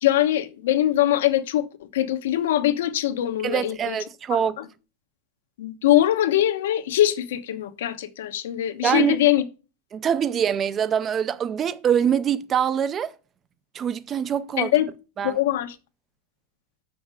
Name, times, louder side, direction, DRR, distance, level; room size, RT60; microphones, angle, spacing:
voice 1, 0.0-4.0 4.3-4.6 5.6-9.4 14.6-14.9 15.2-15.7, left 13 dB, 70° left, 1.1 m, -22 dB
voice 2, 3.4-4.6 8.8-9.2 9.9-13.1 13.7-14.7 15.2-15.4, right 8 dB, 15° right, 0.4 m, -24 dB
6.5 x 5.8 x 6.2 m
supercardioid pair, 180°, 0 cm